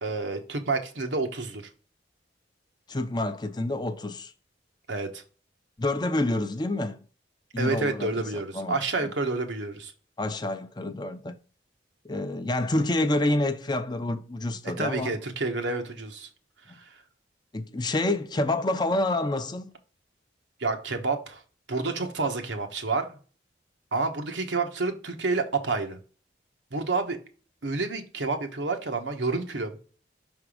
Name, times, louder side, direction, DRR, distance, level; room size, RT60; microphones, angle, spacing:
voice 1, 0.0-1.6 4.9-5.2 7.6-9.9 14.6-16.3 16.8-16.9 20.6-21.4 21.7-23.2 23.9-26.0 26.7-27.2 27.6-29.8, right 3 dB, 90° right, 1.2 m, -29 dB
voice 2, 2.9-4.3 5.8-7.0 7.5-8.7 9.0-9.1 10.2-11.4 12.0-15.1 17.5-19.7, left 2 dB, 25° left, 0.5 m, -28 dB
5.9 x 3.6 x 4.9 m
head